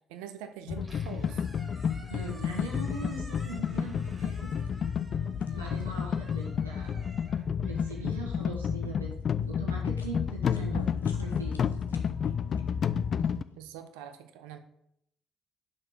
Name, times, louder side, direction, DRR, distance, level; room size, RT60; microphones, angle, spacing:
voice 1, 0.1-1.4 13.6-14.6, right 9 dB, 70° right, 8 dB, 0.5 m, -44 dB
sound 1, 0.7-13.4, left 7 dB, 45° left, 0.3 m, -31 dB
Squeak, 0.7-8.9, right 1 dB, 15° right, 2.2 m, -53 dB
sound 2, 1.8-13.6, left 2 dB, 85° left, 0.6 m, -53 dB
voice 2, 2.1-4.5 5.5-7.0 7.6-9.1 9.5-11.9, right 3 dB, 85° right, -2 dB, 1.4 m, -41 dB
5.9 x 4.9 x 6.2 m, 0.75 s
figure-of-eight pair, 45°, 0 cm